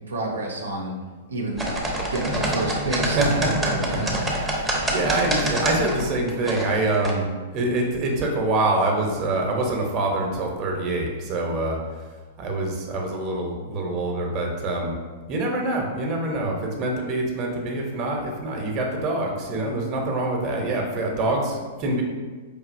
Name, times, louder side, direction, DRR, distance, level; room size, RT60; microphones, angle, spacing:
voice 1, 0.1-0.9 1.3-1.7 2.1-4.2, right 2 dB, 80° right, -1 dB, 0.6 m, -29 dB
sound 1, 1.6-7.1, right 1 dB, 5° right, 0.7 m, -26 dB
voice 2, 3.1-7.3 7.5-11.8 12.4-14.9 15.3-22.0, right 2 dB, 35° right, 0 dB, 0.8 m, -25 dB
4.9 x 2.7 x 2.6 m, 1.4 s
figure-of-eight pair, 105°, 0 cm